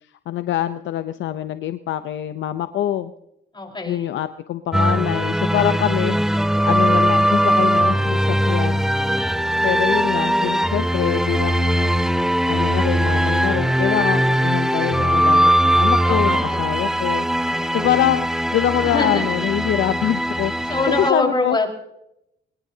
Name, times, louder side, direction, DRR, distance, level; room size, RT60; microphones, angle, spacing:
voice 1, 0.3-3.1 3.9-8.9 9.6-17.3 17.7-21.6, left 12 dB, 70° left, 11 dB, 0.7 m, -24 dB
voice 2, 3.5-4.1 16.1-17.0 17.4-17.9 18.8-19.3 20.7-21.7, left 2 dB, 25° left, 1 dB, 4.7 m, -25 dB
sound 1, 4.7-21.1, equal, ahead, 0.6 m, -20 dB
22.5 x 21.0 x 2.8 m, 0.83 s
cardioid pair, 90°, 20 cm